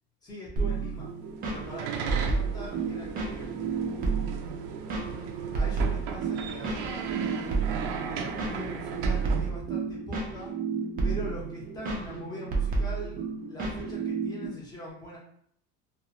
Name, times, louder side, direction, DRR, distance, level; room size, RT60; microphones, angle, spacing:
voice 1, 0.2-1.1 1.5-4.0 5.5-7.1 8.1-10.6 11.0-13.1 13.5-15.2, equal, 10° left, -4 dB, 0.7 m, -42 dB
sound 1, 0.6-14.5, right 4 dB, 25° right, 0.5 m, -31 dB
sound 2, 1.2-9.5, right 6 dB, 70° right, 0.5 m, -36 dB
2.4 x 2.3 x 2.8 m, 0.66 s
cardioid pair, 160°, 34 cm